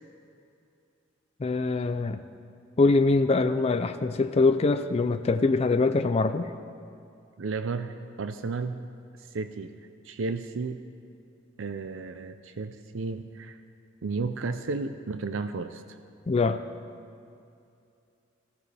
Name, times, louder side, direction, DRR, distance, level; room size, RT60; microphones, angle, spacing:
voice 1, 1.4-2.2 2.8-6.5 16.3-16.6, left 3 dB, 35° left, 9 dB, 0.4 m, -23 dB
voice 2, 7.4-8.8 9.3-9.7 10.0-10.8 11.6-13.6 14.0-15.8, right 4 dB, 85° right, 9 dB, 0.5 m, -33 dB
19.0 x 15.0 x 3.4 m, 2.5 s
head